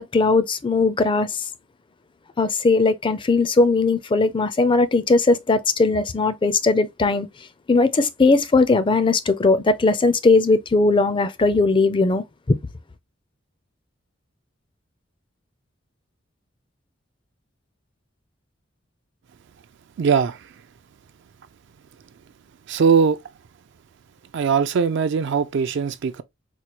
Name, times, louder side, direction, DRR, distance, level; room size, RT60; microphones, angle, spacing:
voice 1, 0.0-1.4 2.4-7.3 7.7-12.6, left 3 dB, 25° left, 0.4 m, -19 dB
voice 2, 20.0-20.5 22.7-23.2 24.3-26.2, right 6 dB, 65° right, 0.4 m, -20 dB
4.4 x 2.2 x 2.9 m
head